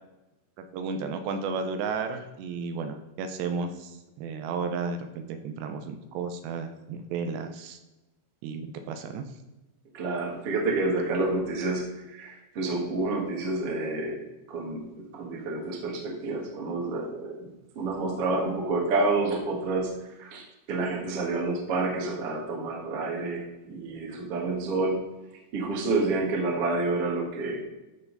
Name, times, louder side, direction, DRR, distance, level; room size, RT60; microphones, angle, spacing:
voice 1, 0.6-7.8 8.4-9.2, right 5 dB, 80° right, 7 dB, 2.9 m, -33 dB
voice 2, 9.9-25.0 25.5-27.6, right 3 dB, 50° right, -1 dB, 1.7 m, -29 dB
13.0 x 5.7 x 4.0 m, 1.0 s
omnidirectional pair, 5.2 m